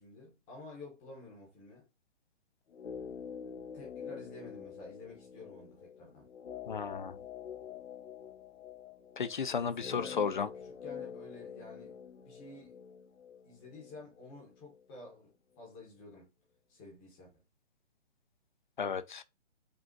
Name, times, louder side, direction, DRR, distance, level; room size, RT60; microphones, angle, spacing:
voice 1, 0.0-1.8 3.7-6.3 9.5-10.2 10.6-11.9 12.2-12.8 13.4-16.3 16.7-17.4, left 2 dB, 5° left, 0.8 m, -51 dB
sound 1, 2.7-14.8 15.1-15.2, left 7 dB, 80° left, 1.0 m, -47 dB
voice 2, 6.7-7.2 9.2-10.5 18.8-19.2, left 6 dB, 45° left, 0.4 m, -33 dB
5.1 x 2.4 x 3.8 m
hypercardioid pair, 170°, 35 cm